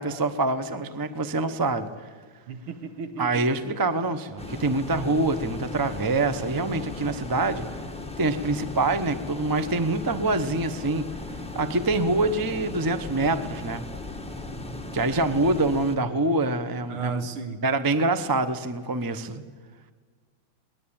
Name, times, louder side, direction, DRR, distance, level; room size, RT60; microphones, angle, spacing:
voice 1, 0.0-1.9 3.2-7.6 8.2-11.0 11.5-13.8 14.9-17.2 17.6-19.4, right 2 dB, 35° right, 11 dB, 0.3 m, -25 dB
voice 2, 2.5-3.5 16.9-17.6, right 5 dB, 80° right, 9 dB, 2.2 m, -34 dB
sound 1, 4.4-16.0, left 2 dB, 5° left, 1.0 m, -37 dB
21.0 x 20.0 x 8.8 m, 1.5 s
omnidirectional pair, 2.3 m